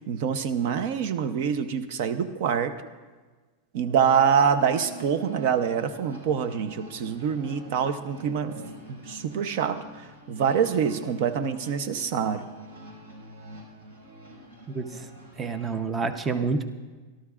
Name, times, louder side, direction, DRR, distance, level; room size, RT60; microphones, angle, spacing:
voice 1, 0.0-2.7 3.7-12.5, right 7 dB, 60° right, 10 dB, 0.7 m, -25 dB
sound 1, 3.7-15.7, right 1 dB, 85° right, 5.4 m, -46 dB
voice 2, 14.7-15.1 15.4-16.6, right 4 dB, 20° right, 9 dB, 0.8 m, -28 dB
26.5 x 12.5 x 2.4 m, 1.3 s
supercardioid pair, 140°, 0 cm